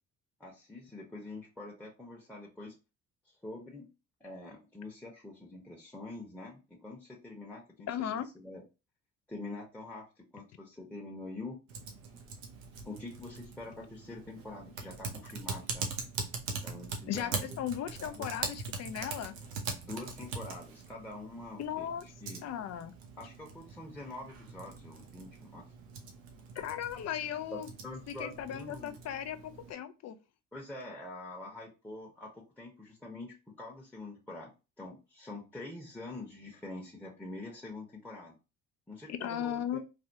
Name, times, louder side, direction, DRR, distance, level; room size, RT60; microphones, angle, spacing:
voice 1, 0.4-2.7 3.2-3.8 4.2-8.6 9.3-11.6 12.8-15.9 16.6-17.6 18.0-18.3 19.8-21.9 22.2-22.5 23.2-25.7 27.5-28.9 30.5-34.5 34.8-38.3 38.9-39.8, left 2 dB, 5° left, 0.9 m, -45 dB
voice 2, 7.9-8.3 17.1-19.3 21.6-22.1 22.4-22.9 26.5-27.7 28.1-30.2 39.1-39.8, left 10 dB, 45° left, 0.5 m, -37 dB
Typing, 11.7-29.7, right 5 dB, 80° right, 0.7 m, -42 dB
3.3 x 2.2 x 2.7 m
hypercardioid pair, 55°, 38 cm